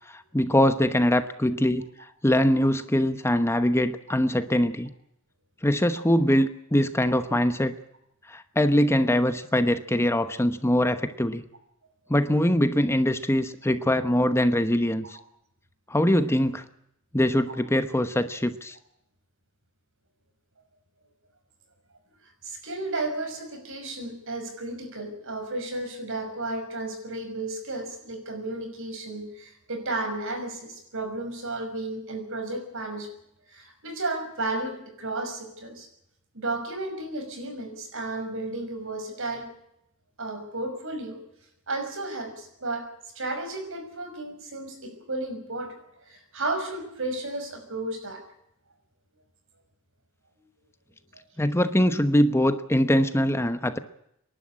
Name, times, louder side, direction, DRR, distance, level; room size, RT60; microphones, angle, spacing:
voice 1, 0.1-4.9 5.6-7.7 8.3-11.4 12.1-15.2 15.9-16.6 17.1-18.8 51.4-53.8, left 1 dB, 10° left, 10 dB, 1.0 m, -23 dB
voice 2, 22.4-33.1 33.5-35.9 36.3-39.5 40.2-41.2 41.7-48.2 51.1-51.2, right 2 dB, 65° right, 5 dB, 6.0 m, -33 dB
26.0 x 11.5 x 9.8 m, 0.78 s
head